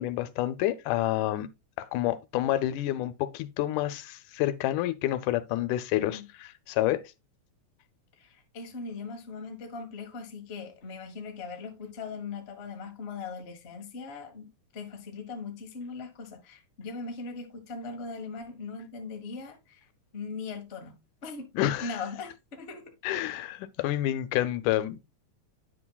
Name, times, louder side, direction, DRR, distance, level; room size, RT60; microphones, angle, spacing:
voice 1, 0.0-1.5 1.8-7.0 21.6-21.9 23.0-25.0, left 14 dB, 90° left, 2.2 m, -28 dB
voice 2, 8.2-19.9 20.1-21.0 21.2-21.5 21.8-22.9, left 4 dB, 60° left, 0.6 m, -40 dB
9.4 x 6.1 x 2.3 m
omnidirectional pair, 3.5 m